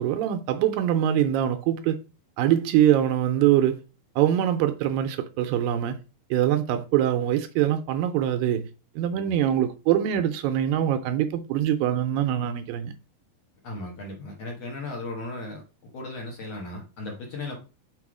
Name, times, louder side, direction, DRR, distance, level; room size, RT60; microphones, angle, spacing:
voice 1, 0.0-2.0 2.4-3.8 4.2-6.0 6.3-8.7 9.0-12.9, right 11 dB, 80° right, 2.2 m, -23 dB
voice 2, 13.6-15.6 15.9-17.6, left 2 dB, 55° left, 2.0 m, -36 dB
6.1 x 4.6 x 4.8 m
omnidirectional pair, 4.2 m